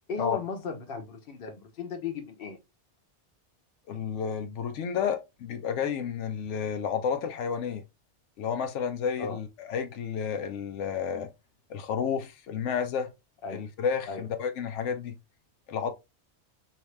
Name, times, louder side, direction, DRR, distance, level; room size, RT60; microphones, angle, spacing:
voice 1, 0.1-2.6 9.2-9.4 13.4-13.6 14.1-14.3, left 5 dB, 55° left, 1.0 m, -36 dB
voice 2, 3.9-7.8 8.4-11.3 11.7-13.1 13.5-15.2 15.7-15.9, left 7 dB, 90° left, 0.9 m, -31 dB
2.8 x 2.7 x 3.2 m
omnidirectional pair, 1.2 m